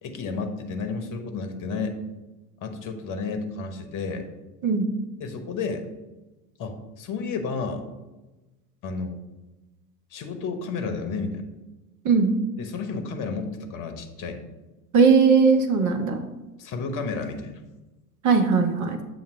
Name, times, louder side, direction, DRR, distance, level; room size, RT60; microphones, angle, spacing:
voice 1, 0.0-2.0 2.6-4.2 5.2-5.8 6.6-7.9 8.8-9.2 10.1-11.4 12.6-14.4 16.6-17.6, left 4 dB, 40° left, 6 dB, 1.1 m, -31 dB
voice 2, 14.9-16.2 18.2-19.0, right 5 dB, 35° right, 5 dB, 1.0 m, -19 dB
7.2 x 2.8 x 5.6 m, 1.1 s
hypercardioid pair, 75°, 50 cm